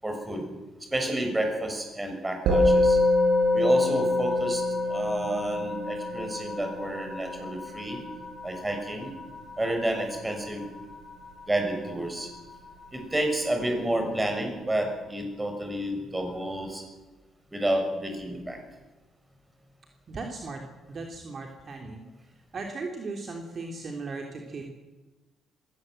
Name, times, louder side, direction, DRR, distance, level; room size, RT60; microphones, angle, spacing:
voice 1, 0.0-0.5 0.9-3.0 3.5-8.0 8.4-9.1 9.6-10.7 11.5-12.3 12.9-16.8 17.5-18.6, right 1 dB, 15° right, 4 dB, 6.7 m, -30 dB
Musical instrument, 2.5-12.0, left 2 dB, 85° right, 6.9 m, -26 dB
voice 2, 20.1-20.6 20.9-22.0 22.5-24.7, right 3 dB, 45° right, 2 dB, 3.1 m, -37 dB
21.0 x 18.0 x 7.9 m, 1.2 s
cardioid pair, 90°, 0 cm